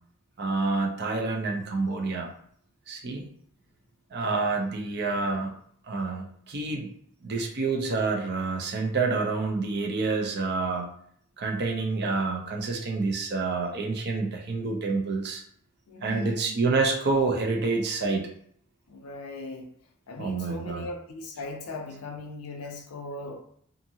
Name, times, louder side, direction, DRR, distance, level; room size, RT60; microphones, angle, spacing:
voice 1, 0.4-2.3 2.9-3.3 4.1-5.5 5.9-6.9 7.2-10.9 11.4-15.4 16.0-18.3 20.2-20.8, right 3 dB, 50° right, 1 dB, 0.5 m, -28 dB
voice 2, 15.9-16.6 18.9-19.7 20.1-23.4, left 2 dB, 80° left, 3 dB, 0.5 m, -38 dB
2.6 x 2.5 x 2.7 m, 0.63 s
head